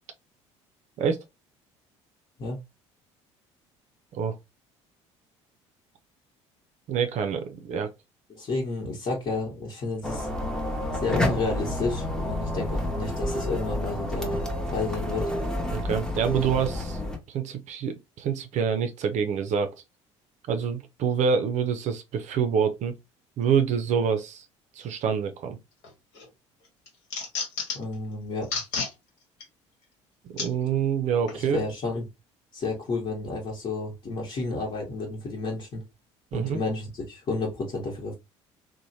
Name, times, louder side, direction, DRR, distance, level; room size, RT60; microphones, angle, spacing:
voice 1, 6.9-7.9 15.7-17.0 17.3-19.7 20.5-23.0 23.4-24.5 24.8-25.6 30.3-31.6 36.3-36.6, right 7 dB, 50° right, 0.5 m, -26 dB
voice 2, 8.3-10.3 10.9-14.4 14.7-15.3 27.7-28.5 31.3-32.0 32.5-35.8 36.3-38.1, left 3 dB, 40° left, 1.2 m, -31 dB
sound 1, 10.0-17.2, left 1 dB, 5° left, 0.8 m, -29 dB
sound 2, 25.8-26.3 26.6-27.9 28.4-28.9 29.4-29.5 30.4-30.5 31.3-31.4, left 4 dB, 70° left, 1.1 m, -31 dB
3.0 x 2.1 x 2.7 m
hypercardioid pair, 60°, 16 cm